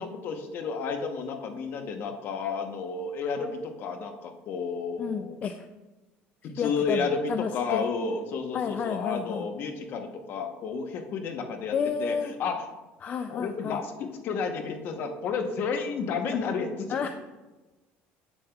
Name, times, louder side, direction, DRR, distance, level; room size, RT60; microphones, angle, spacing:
voice 1, 0.0-5.4 6.4-11.7 12.0-12.7 13.3-17.0, left 5 dB, 50° left, 5 dB, 0.9 m, -31 dB
voice 2, 5.0-5.7 6.4-7.8 8.5-9.4 11.7-12.3 13.0-13.8 16.3-16.4 16.9-17.1, left 6 dB, 35° left, 7 dB, 0.3 m, -31 dB
8.5 x 7.0 x 2.3 m, 1.1 s
cardioid pair, 140°, 4 cm